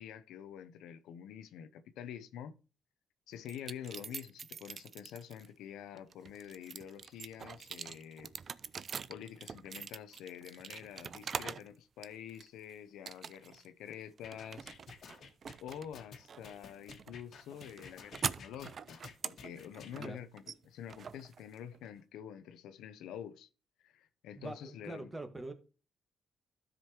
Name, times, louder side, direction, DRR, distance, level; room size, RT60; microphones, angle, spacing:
voice 1, 0.0-2.5 3.3-8.3 9.1-14.7 15.6-23.5 23.8-25.1, left 9 dB, 85° left, 0.6 m, -47 dB
sound 1, 3.5-5.5 6.0-11.7 12.0-12.6 13.1-13.7 13.9-21.9, right 6 dB, 50° right, 0.4 m, -44 dB
sound 2, 14.2-19.9, left 6 dB, 65° left, 1.5 m, -52 dB
voice 2, 24.3-25.5, right 2 dB, 15° right, 1.5 m, -43 dB
12.5 x 5.2 x 2.9 m
cardioid pair, 85°, 0 cm